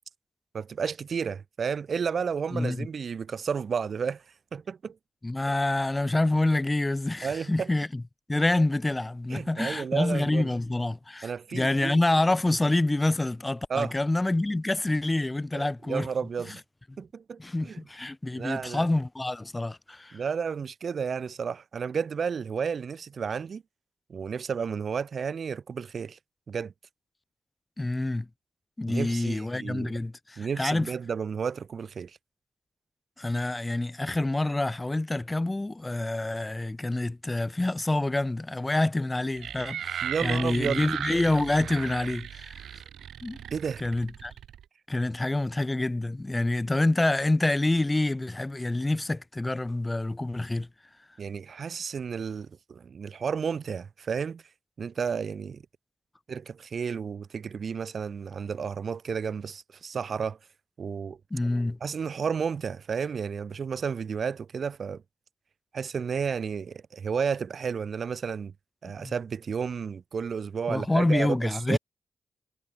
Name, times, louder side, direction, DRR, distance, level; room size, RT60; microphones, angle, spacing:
voice 1, 0.5-4.2 4.5-5.0 7.2-7.7 9.3-10.5 11.2-12.0 13.7-13.9 15.5-16.6 17.0-17.8 18.3-18.9 20.1-23.6 24.1-26.2 26.5-26.7 28.9-30.0 30.4-32.1 40.0-40.8 43.5-43.8 51.2-54.4 54.8-55.6 56.3-60.4 60.8-61.2 61.8-65.0 65.7-68.5 68.8-71.8, right 6 dB, 60° right, 0.4 m, -32 dB
voice 2, 2.5-2.9 5.2-8.0 8.3-16.1 17.4-20.2 27.8-28.3 28.8-30.9 33.2-42.8 43.2-43.4 43.8-44.3 44.9-50.7 61.3-61.8 69.0-69.1 70.7-71.8, left 2 dB, 20° left, 0.7 m, -27 dB
sound 1, 39.4-44.6, right 9 dB, 85° right, 2.3 m, -36 dB
cardioid pair, 70°, 0 cm